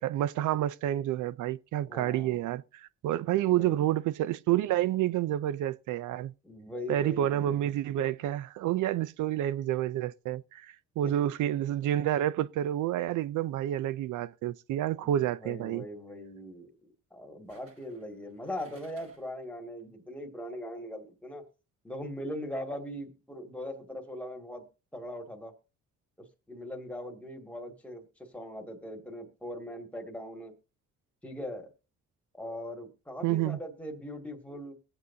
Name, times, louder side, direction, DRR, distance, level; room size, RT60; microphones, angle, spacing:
voice 1, 0.0-6.3 6.9-15.9 33.2-33.6, right 12 dB, 80° right, 0.6 m, -29 dB
voice 2, 1.9-2.4 3.3-3.9 6.4-7.6 11.0-11.1 15.0-21.4 21.8-24.6 24.9-25.5 26.2-30.5 31.2-31.7 32.3-34.7, equal, 5° left, 2.3 m, -40 dB
sound 1, 14.9-15.1 17.5-19.4 19.8-19.9, right 3 dB, 50° right, 5.6 m, -60 dB
22.0 x 7.9 x 2.7 m
cardioid pair, 90°, 30 cm